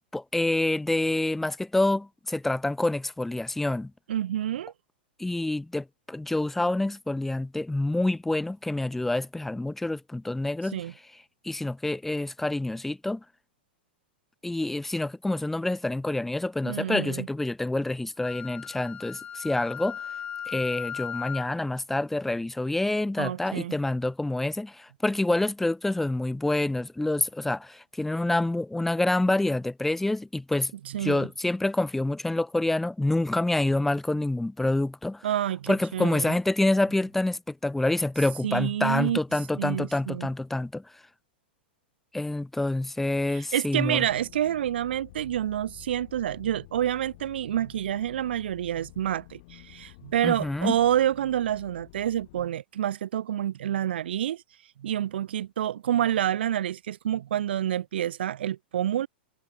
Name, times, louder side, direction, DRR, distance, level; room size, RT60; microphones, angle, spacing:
voice 1, 0.0-3.9 5.2-10.8 11.4-13.2 14.4-20.0 20.5-30.7 31.0-35.2 35.7-40.8 42.1-44.1 50.2-50.8, left 2 dB, 5° left, 0.5 m, -27 dB
voice 2, 4.1-4.7 10.7-10.9 16.6-17.3 23.2-23.7 30.9-31.3 35.2-36.4 38.4-39.2 39.5-40.3 43.3-54.4 54.8-59.1, right 11 dB, 75° right, 1.9 m, -28 dB
Wind instrument woodwind instrument, 18.2-21.6, left 8 dB, 20° left, 1.0 m, -37 dB
sound 1, 43.8-52.5, left 23 dB, 50° left, 4.3 m, -51 dB
hypercardioid pair, 135°, 6 cm